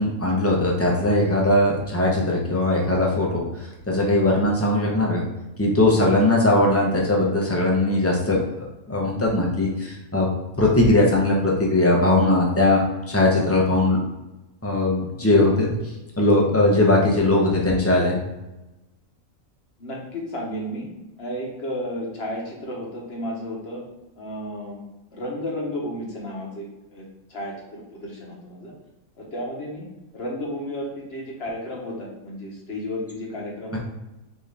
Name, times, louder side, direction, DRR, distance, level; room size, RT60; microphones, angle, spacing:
voice 1, 0.0-3.4 3.9-5.2 5.6-8.4 8.9-10.3 10.6-14.0 14.6-15.7 16.2-18.2, left 2 dB, 20° left, -2 dB, 0.4 m, -20 dB
voice 2, 19.8-20.9 21.2-23.8 24.2-24.8 25.1-26.6 26.9-27.0 27.3-28.7 29.2-29.9 30.1-33.8, equal, 50° left, -2 dB, 1.1 m, -32 dB
4.3 x 2.8 x 3.3 m, 0.99 s
omnidirectional pair, 1.5 m